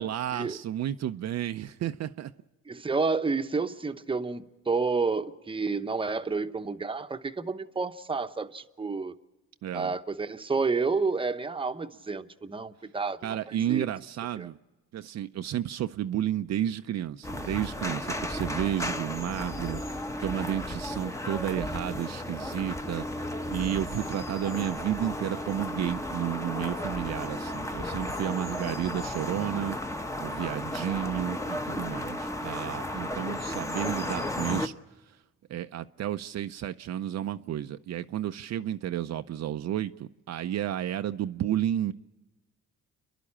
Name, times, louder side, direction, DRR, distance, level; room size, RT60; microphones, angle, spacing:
voice 1, 0.0-2.3 9.6-9.9 13.2-14.6 14.9-29.8 30.2-34.7 35.5-41.9, right 11 dB, 60° right, 0.6 m, -32 dB
voice 2, 2.7-9.1 9.7-13.9 14.4-14.5, right 4 dB, 15° right, 0.9 m, -30 dB
sound 1, 17.2-34.7, left 1 dB, 10° left, 1.0 m, -34 dB
29.0 x 11.5 x 8.6 m
cardioid pair, 90°, 30 cm